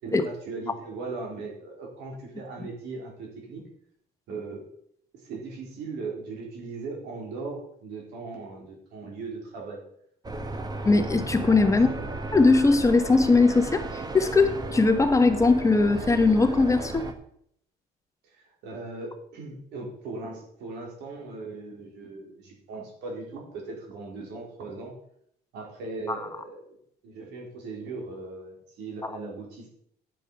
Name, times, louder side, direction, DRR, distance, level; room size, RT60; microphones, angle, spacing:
voice 1, 0.0-3.6 4.3-4.7 5.1-9.8 11.7-12.1 18.2-25.0 25.5-26.8 27.0-29.7, right 3 dB, 90° right, 0 dB, 3.8 m, -38 dB
sound 1, 10.2-17.1, right 2 dB, 25° right, 1.2 m, -34 dB
voice 2, 10.8-11.9 12.3-17.1 26.1-26.2 29.0-29.1, left 3 dB, 20° left, 8 dB, 1.1 m, -20 dB
10.0 x 7.6 x 5.4 m, 0.69 s
cardioid pair, 110°, 17 cm